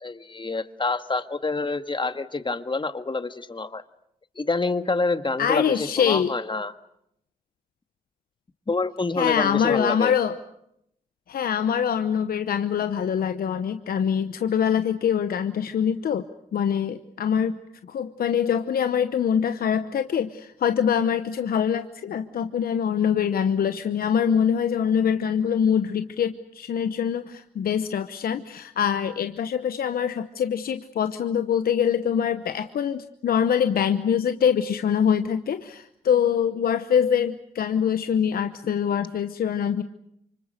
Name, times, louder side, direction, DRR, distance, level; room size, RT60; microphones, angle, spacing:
voice 1, 0.0-3.8 4.4-6.7 8.7-10.1, left 3 dB, 30° left, 10 dB, 1.7 m, -27 dB
voice 2, 5.4-6.3 9.2-10.4 11.3-16.2 16.5-17.6 17.9-39.8, left 8 dB, 75° left, 10 dB, 1.0 m, -24 dB
28.0 x 25.0 x 6.7 m, 0.77 s
supercardioid pair, 50°, 16 cm